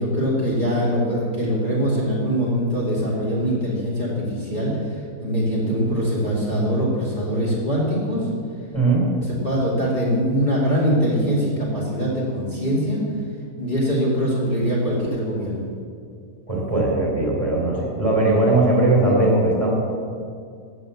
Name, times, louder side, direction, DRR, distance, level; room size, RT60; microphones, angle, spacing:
voice 1, 0.0-4.7 5.2-8.2 9.3-13.0 13.6-15.6, equal, 30° left, -6 dB, 2.4 m, -22 dB
voice 2, 8.7-9.1 16.5-19.7, right 2 dB, 20° right, -3 dB, 3.3 m, -19 dB
12.5 x 8.6 x 7.0 m, 2.3 s
omnidirectional pair, 1.6 m